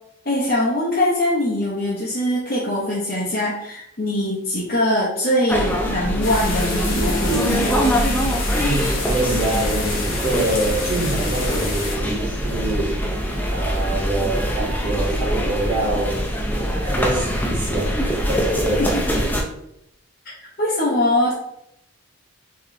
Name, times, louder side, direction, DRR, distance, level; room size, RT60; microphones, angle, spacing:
voice 1, 0.2-7.8 18.8-19.0 20.2-20.3 20.6-21.3, left 1 dB, 45° left, -8 dB, 1.0 m, -22 dB
sound 1, 5.5-19.4, equal, 10° left, 0.6 m, -23 dB
sound 2, 6.2-12.0, left 3 dB, 70° left, 1.1 m, -30 dB
voice 2, 8.6-13.1 13.5-16.3 16.6-19.3, right 1 dB, 20° right, -8 dB, 1.7 m, -25 dB
4.8 x 3.1 x 3.2 m, 0.78 s
head